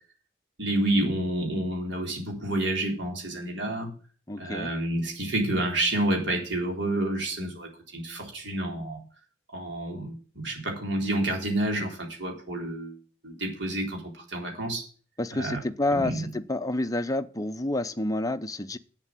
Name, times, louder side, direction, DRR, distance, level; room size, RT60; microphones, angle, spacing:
voice 1, 0.6-3.9 4.4-9.0 9.5-13.0 13.2-14.9 15.3-15.6 15.9-16.2, right 1 dB, 60° right, 1 dB, 3.9 m, -29 dB
voice 2, 4.3-4.7 15.2-18.8, left 2 dB, 15° left, 9 dB, 0.6 m, -29 dB
8.2 x 7.7 x 7.6 m, 0.40 s
head